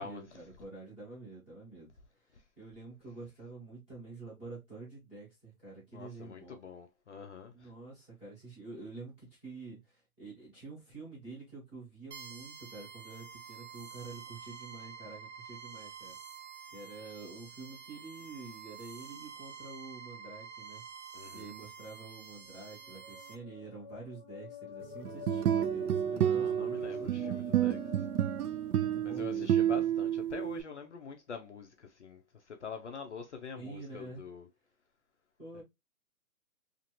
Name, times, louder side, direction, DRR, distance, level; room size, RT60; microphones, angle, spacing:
voice 1, 0.0-1.9 2.2-6.6 7.5-16.2 16.7-20.8 21.3-27.7 28.7-29.8 33.5-34.2 35.4-35.6, right 3 dB, 10° right, 0.8 m, -48 dB
voice 2, 5.9-7.7 21.1-21.5 26.1-28.1 29.0-34.5 35.5-35.6, left 5 dB, 50° left, 0.5 m, -45 dB
sound 1, 12.1-23.3, right 6 dB, 45° right, 0.7 m, -49 dB
sound 2, 22.4-29.2, left 5 dB, 25° left, 0.8 m, -48 dB
sound 3, 25.1-30.6, right 10 dB, 80° right, 0.5 m, -30 dB
2.6 x 2.5 x 2.8 m
hypercardioid pair, 175°, 45 cm